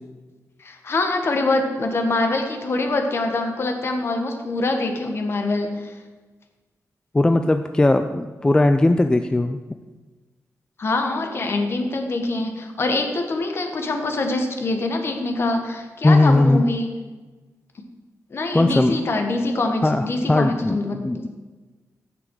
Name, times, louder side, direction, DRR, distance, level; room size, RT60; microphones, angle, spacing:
voice 1, 0.6-5.9 10.8-16.9 18.3-21.3, left 2 dB, 45° left, 4 dB, 1.4 m, -24 dB
voice 2, 7.1-9.6 16.0-16.6 18.5-18.9 19.8-21.3, left 2 dB, 15° left, 8 dB, 0.4 m, -18 dB
15.0 x 6.1 x 4.7 m, 1.3 s
wide cardioid pair, 145°, 6 cm